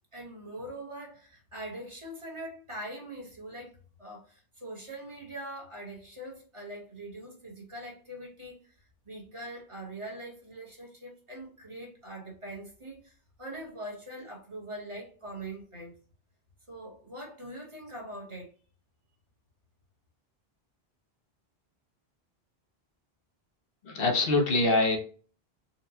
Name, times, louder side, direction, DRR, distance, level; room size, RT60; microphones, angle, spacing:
voice 1, 0.1-8.6 9.0-16.0 16.7-18.5, right 1 dB, 30° right, 1.1 m, -42 dB
voice 2, 23.8-25.0, left 2 dB, 65° left, 1.0 m, -24 dB
4.0 x 2.2 x 2.7 m
omnidirectional pair, 1.1 m